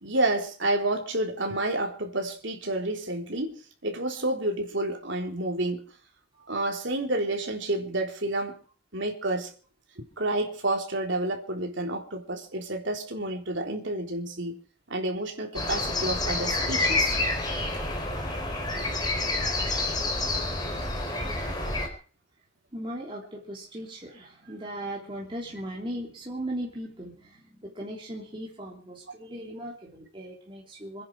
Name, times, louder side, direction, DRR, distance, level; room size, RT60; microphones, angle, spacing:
voice 1, 0.0-3.6 3.8-5.8 6.5-8.6 8.9-9.5 10.0-14.6 14.9-17.2, right 1 dB, 60° right, 3.8 m, -29 dB
sound 1, 15.5-21.9, left 2 dB, 20° left, 4.5 m, -28 dB
voice 2, 22.7-31.0, right 1 dB, 25° right, 3.2 m, -38 dB
27.0 x 10.0 x 4.8 m
head